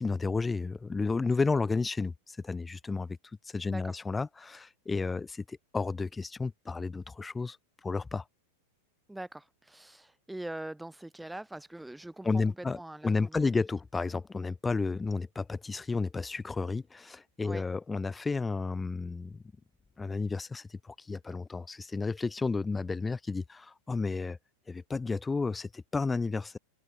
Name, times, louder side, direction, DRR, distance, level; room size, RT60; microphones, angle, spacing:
voice 1, 0.0-3.2 3.5-7.6 7.8-8.2 12.2-12.8 13.0-19.4 20.0-24.4 24.7-26.6, left 4 dB, 10° left, 4.2 m, -32 dB
voice 2, 3.7-4.0 9.1-13.5 17.4-17.6, right 1 dB, 5° right, 2.0 m, -43 dB
figure-of-eight pair, 90°, 0 cm